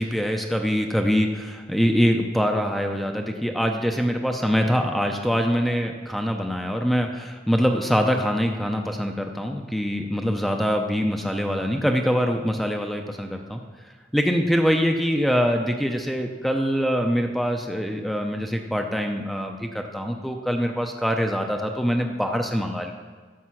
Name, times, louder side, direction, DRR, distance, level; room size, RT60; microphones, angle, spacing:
voice 1, 0.0-13.6 14.1-22.9, equal, ahead, 3 dB, 0.6 m, -24 dB
12.5 x 7.2 x 5.8 m, 1.5 s
head